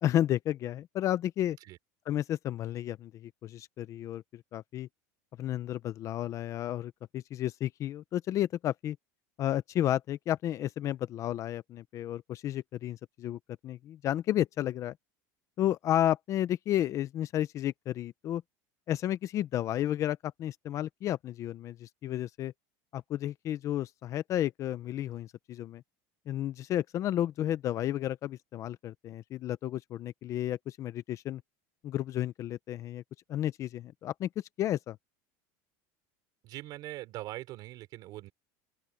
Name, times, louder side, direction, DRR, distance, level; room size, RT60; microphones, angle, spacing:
voice 1, 0.0-1.6 2.1-4.9 5.4-9.0 9.4-14.9 15.6-18.4 18.9-22.5 22.9-25.8 26.3-31.4 31.8-33.0 33.3-34.3 34.6-35.0, left 12 dB, 35° left, 0.6 m, -32 dB
voice 2, 36.4-38.3, right 16 dB, 45° right, 5.0 m, -42 dB
open air
supercardioid pair, 155°, 9 cm